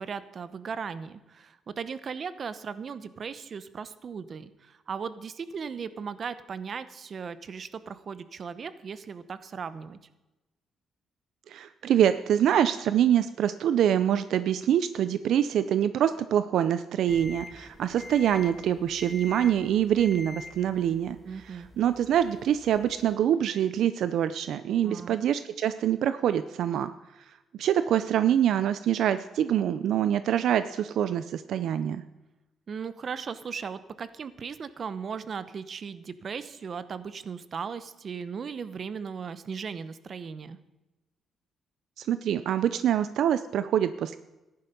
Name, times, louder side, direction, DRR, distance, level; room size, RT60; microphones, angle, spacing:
voice 1, 0.0-10.0 21.2-21.7 24.8-25.2 32.7-40.6, right 6 dB, 45° right, 14 dB, 0.9 m, -37 dB
voice 2, 11.5-21.2 21.4-26.9 27.3-32.0 42.0-44.2, right 10 dB, 75° right, 12 dB, 0.5 m, -25 dB
sound 1, 17.1-23.1, left 3 dB, 5° left, 1.4 m, -46 dB
14.5 x 10.5 x 5.4 m, 1.0 s
cardioid pair, 100°, 0 cm